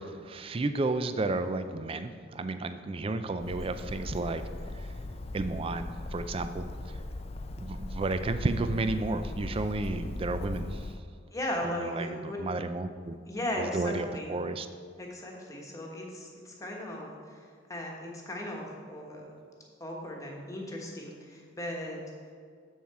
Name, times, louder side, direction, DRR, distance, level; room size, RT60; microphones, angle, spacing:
voice 1, 0.0-4.4 4.7-4.9 5.3-6.6 7.6-10.9 11.8-13.2 13.6-14.7, right 2 dB, 30° right, 10 dB, 0.4 m, -32 dB
Bird, 3.4-11.0, left 2 dB, 35° left, 0.4 m, -39 dB
voice 2, 11.3-12.4 13.3-14.3 15.0-19.3 19.8-22.0, left 1 dB, 15° left, -1 dB, 1.2 m, -37 dB
7.3 x 7.2 x 4.7 m, 2.1 s
head